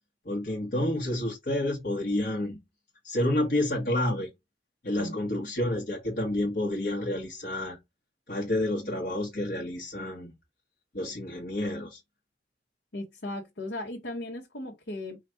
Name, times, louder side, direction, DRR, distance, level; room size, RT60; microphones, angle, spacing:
voice 1, 0.2-2.6 3.0-4.3 4.8-7.8 8.3-10.3 10.9-12.0, left 1 dB, 55° left, 1.3 m, -29 dB
voice 2, 12.9-15.2, left 1 dB, 75° left, 1.2 m, -37 dB
4.9 x 2.4 x 4.5 m
head